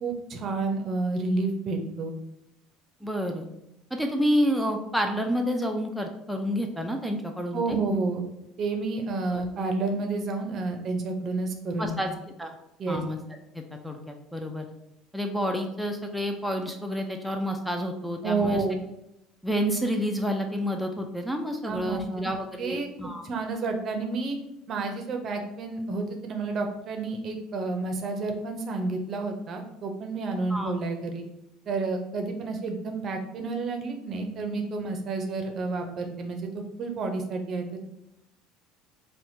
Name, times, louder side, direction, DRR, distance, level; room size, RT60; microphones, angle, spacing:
voice 1, 0.0-2.1 7.5-8.2 8.6-12.0 12.8-13.0 18.2-18.8 21.6-22.2 22.6-24.4 24.7-31.2 31.7-37.9, right 3 dB, 45° right, 4 dB, 0.6 m, -30 dB
voice 2, 3.0-3.5 3.9-7.8 9.3-9.4 11.8-12.1 12.4-12.6 12.9-13.2 13.5-14.7 15.1-18.6 19.4-23.2 30.5-30.7, equal, ahead, 2 dB, 0.4 m, -29 dB
4.1 x 2.2 x 2.6 m, 0.85 s
hypercardioid pair, 70°, 0 cm